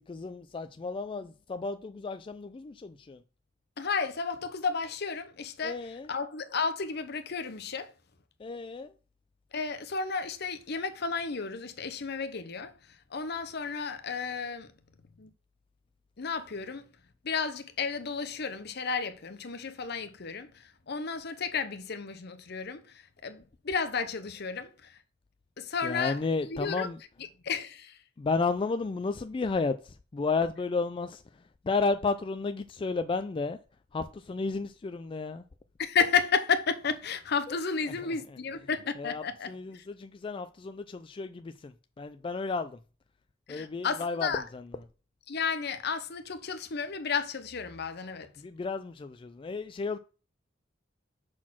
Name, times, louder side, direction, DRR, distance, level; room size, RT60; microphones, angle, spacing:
voice 1, 0.0-3.2 5.6-6.1 8.4-9.0 25.8-27.0 28.2-33.6 33.9-35.4 37.9-38.4 38.9-42.8 43.5-44.9 48.4-50.0, left 4 dB, 25° left, 0.3 m, -33 dB
voice 2, 3.8-5.8 6.1-7.9 9.5-12.7 13.1-14.7 15.2-15.3 16.2-16.9 17.2-25.0 25.6-26.2 26.5-26.9 27.4-28.0 35.8-39.8 43.5-44.4 45.3-48.3, left 5 dB, 60° left, 0.8 m, -32 dB
6.1 x 4.2 x 6.0 m
head